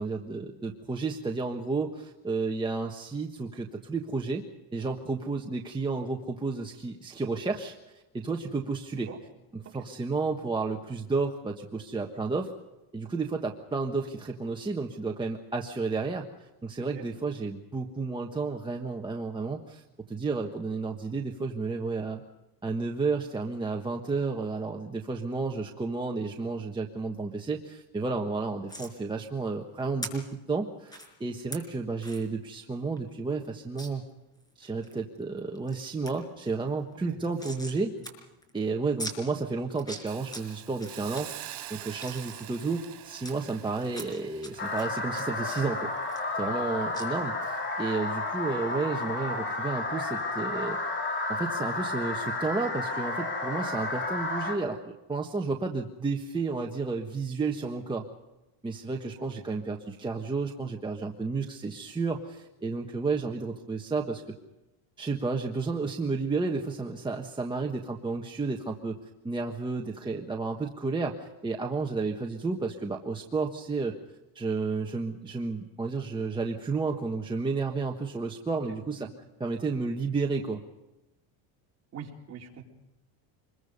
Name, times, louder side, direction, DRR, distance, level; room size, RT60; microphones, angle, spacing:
voice 1, 0.0-4.4 4.7-7.7 8.1-9.1 9.5-12.5 12.9-19.8 20.1-22.2 22.6-34.0 34.6-37.9 38.5-45.9 46.3-50.8 51.3-58.1 58.6-64.2 65.0-69.0 69.2-74.0 74.3-79.1 79.4-80.6, right 4 dB, 10° right, 1 dB, 1.3 m, -32 dB
sound 1, 28.7-28.9 30.0-30.1 30.9-31.1 31.5-31.6 32.0-32.2 32.6-32.7 33.0-33.1 33.8-33.9 34.4-34.9 35.4-35.8 36.1-36.2 36.4-37.8 38.0-38.1 38.4-38.5 39.0-39.2 39.7-40.4 40.8-41.2 41.7-43.3 43.9-44.5 44.8-46.7 46.9-47.1, right 1 dB, 10° left, 5.0 m, -41 dB
Hiss, 40.1-47.1 47.5-47.7, right 13 dB, 55° right, 3.9 m, -46 dB
sound 2, 44.6-54.6, left 2 dB, 25° left, 3.5 m, -32 dB
voice 2, 81.9-82.6, right 7 dB, 35° right, -1 dB, 4.2 m, -44 dB
26.5 x 22.0 x 5.4 m, 1.0 s
cardioid pair, 150°, 44 cm